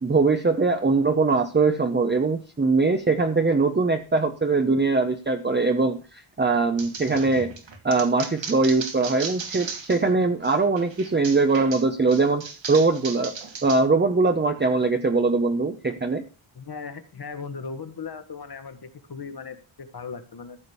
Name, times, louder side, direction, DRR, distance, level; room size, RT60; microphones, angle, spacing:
voice 1, 0.0-7.5 7.8-13.3 13.6-16.2, right 3 dB, 20° right, 6 dB, 1.0 m, -22 dB
sound 1, 6.8-10.1 10.4-13.8, right 5 dB, 65° right, 2.6 m, -36 dB
voice 2, 16.5-20.6, left 5 dB, 50° left, 9 dB, 1.6 m, -37 dB
14.5 x 5.2 x 7.0 m, 0.34 s
wide cardioid pair, 130°, 49 cm